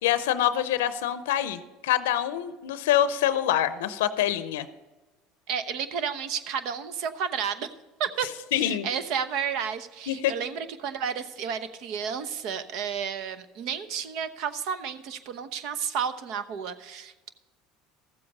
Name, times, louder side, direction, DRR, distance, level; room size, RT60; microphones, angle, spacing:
voice 1, 0.0-4.7 8.5-8.9 10.1-10.3, left 11 dB, 85° left, 13 dB, 0.6 m, -25 dB
voice 2, 5.5-7.7 8.0-8.3 8.5-17.3, right 7 dB, 65° right, 12 dB, 0.9 m, -32 dB
14.0 x 7.8 x 5.4 m, 1.2 s
supercardioid pair, 95°, 0 cm